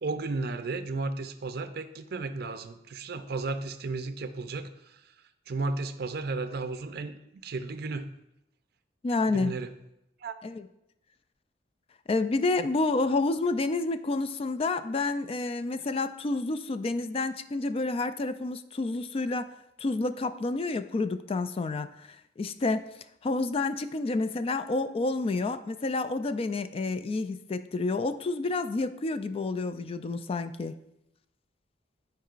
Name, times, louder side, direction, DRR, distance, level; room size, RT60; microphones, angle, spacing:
voice 1, 0.0-5.0 5.5-7.2 7.4-8.1 9.3-9.7 10.2-10.3, right 3 dB, 60° right, 9 dB, 0.5 m, -34 dB
voice 2, 9.0-9.6 10.4-10.7 12.1-19.5 19.8-22.9 23.2-30.8, left 3 dB, 30° left, 11 dB, 0.3 m, -29 dB
12.0 x 4.6 x 2.5 m, 0.85 s
head